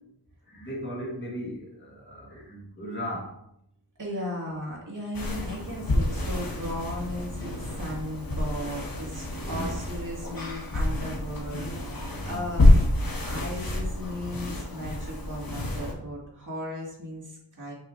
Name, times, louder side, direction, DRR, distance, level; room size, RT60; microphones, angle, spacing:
voice 1, 0.5-3.4 6.5-6.6 9.4-9.8 12.1-12.4 15.0-15.1, equal, 30° left, -3 dB, 1.8 m, -37 dB
voice 2, 4.0-12.7 13.2-17.7, left 1 dB, 45° right, -4 dB, 2.4 m, -36 dB
sound 1, 5.1-15.9, left 1 dB, 55° left, 1.3 m, -27 dB
6.8 x 5.4 x 2.7 m, 0.74 s
wide cardioid pair, 100°, 40 cm